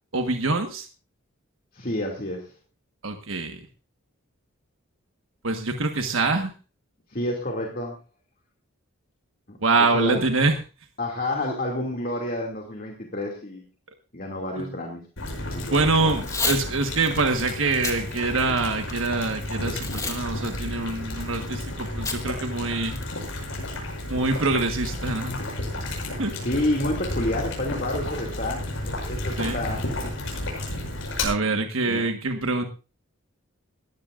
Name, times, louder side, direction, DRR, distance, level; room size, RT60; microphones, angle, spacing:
voice 1, 0.1-0.9 3.0-3.6 5.4-6.5 9.6-10.6 14.5-14.7 15.7-22.9 24.1-25.3 26.2-26.3 29.4-29.6 31.2-32.6, right 3 dB, 70° right, 5 dB, 1.5 m, -25 dB
voice 2, 1.7-2.5 7.1-8.0 9.5-9.6 9.9-10.2 11.0-13.7 14.1-15.0 15.4-16.2 26.3-30.1 31.8-32.1, left 1 dB, 40° left, 0 dB, 2.5 m, -29 dB
Boiling, 15.2-31.2, left 1 dB, 65° left, 7.7 m, -32 dB
Packing tape duct tape / Tearing, 16.2-16.6 17.1-17.2 17.7-18.0 18.5-19.1 19.8-20.2 20.5-20.6 22.1-22.2 22.6-22.7 23.0-23.3, left 4 dB, 15° left, 1.4 m, -29 dB
20.5 x 15.0 x 2.6 m, 0.31 s
head